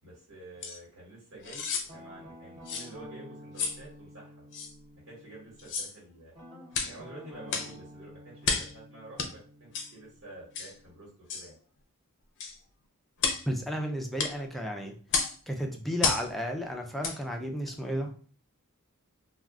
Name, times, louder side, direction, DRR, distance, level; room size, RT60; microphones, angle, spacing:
voice 1, 0.0-4.4 5.0-6.3 6.8-11.6, right 1 dB, 80° right, -6 dB, 1.3 m, -49 dB
sound 1, 0.6-0.8 1.4-1.9 2.7-2.9 3.6-3.8 4.5-4.7 5.6-5.9 6.7-7.0 7.5-7.7 8.4-8.7 9.2-9.3 9.7-9.9 10.5-10.7 11.3-11.5 12.4-12.6 13.2-13.5 14.2-14.4 15.1-15.4 16.0-16.3 17.0-17.2 17.7-17.8, left 5 dB, 55° left, 0.5 m, -31 dB
Guitar, 1.9-5.7 6.3-11.1, equal, 20° right, 0.9 m, -50 dB
voice 2, 13.5-15.0 15.5-18.3, equal, ahead, 1 dB, 0.3 m, -33 dB
2.3 x 2.2 x 3.6 m, 0.43 s
head